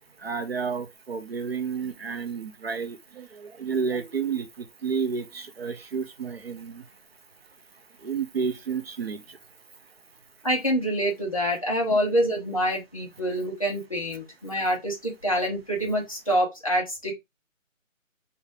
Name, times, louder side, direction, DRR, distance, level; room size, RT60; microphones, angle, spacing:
voice 1, 0.2-6.9 8.0-9.4 11.9-12.0, right 5 dB, 50° right, 0.6 m, -31 dB
voice 2, 10.4-17.1, equal, 25° left, 0.7 m, -26 dB
2.9 x 2.7 x 3.2 m
hypercardioid pair, 175°, 40 cm